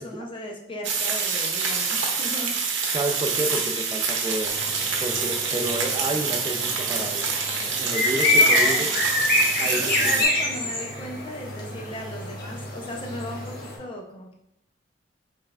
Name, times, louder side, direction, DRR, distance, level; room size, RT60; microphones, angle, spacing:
voice 1, 0.0-2.6 8.0-8.9 9.6-14.3, left 1 dB, 30° left, 1 dB, 0.6 m, -36 dB
sound 1, 0.8-10.2, right 5 dB, 75° right, 0.8 m, -26 dB
voice 2, 2.9-4.6 5.0-7.3 7.8-8.9 9.6-10.2, right 2 dB, 20° right, 5 dB, 0.4 m, -30 dB
sound 2, 4.5-13.7, left 1 dB, 55° left, 1.0 m, -26 dB
5.5 x 3.4 x 2.4 m, 0.80 s
head